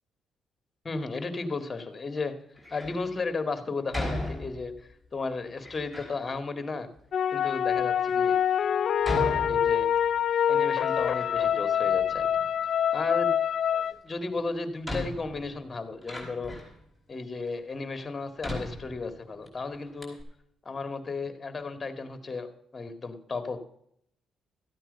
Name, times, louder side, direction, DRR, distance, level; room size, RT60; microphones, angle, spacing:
voice 1, 0.8-2.3 2.7-6.9 7.3-8.4 9.1-9.9 10.5-12.3 12.9-13.4 13.7-16.5 17.1-20.2 20.7-23.6, left 3 dB, 30° left, 9 dB, 2.0 m, -34 dB
Door, 2.5-3.0 3.9-4.9 5.6-6.2 7.0-7.1 7.8-7.9 9.0-10.2 10.5-11.6 11.9-12.7 14.1-14.2 14.8-16.8 17.5-17.6 18.4-19.5 19.7-19.8 20.0-20.2, left 1 dB, ahead, 4.9 m, -37 dB
sound 1, 7.1-13.9, left 9 dB, 60° left, 0.5 m, -25 dB
14.0 x 9.0 x 5.3 m, 0.71 s
cardioid pair, 90°, 0 cm